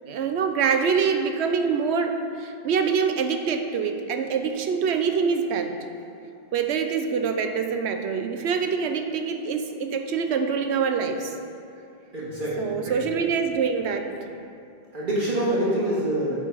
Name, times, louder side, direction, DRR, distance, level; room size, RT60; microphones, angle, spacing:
voice 1, 0.1-5.8 6.5-11.3 12.6-14.3, right 6 dB, 85° right, 6 dB, 0.9 m, -25 dB
voice 2, 12.1-12.9 14.9-16.4, right 1 dB, 50° right, -7 dB, 2.2 m, -26 dB
9.0 x 4.6 x 5.6 m, 2.7 s
omnidirectional pair, 1.1 m